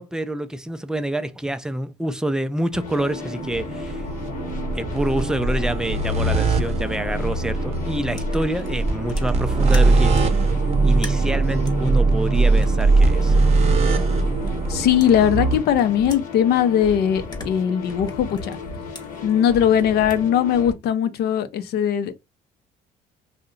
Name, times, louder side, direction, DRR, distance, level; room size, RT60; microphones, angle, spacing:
voice 1, 0.0-4.0 4.7-10.5 10.8-13.4, right 1 dB, 5° right, 0.3 m, -27 dB
sound 1, 2.7-20.7, left 4 dB, 50° left, 1.0 m, -35 dB
sound 2, 2.9-15.6, right 3 dB, 40° right, 0.7 m, -21 dB
sound 3, 8.1-10.4 10.9-14.7 15.0-16.8 17.1-20.2, left 3 dB, 25° left, 0.8 m, -44 dB
voice 2, 14.7-18.6 19.2-22.1, left 9 dB, 70° left, 0.5 m, -20 dB
2.7 x 2.1 x 3.7 m
cardioid pair, 110°, 17 cm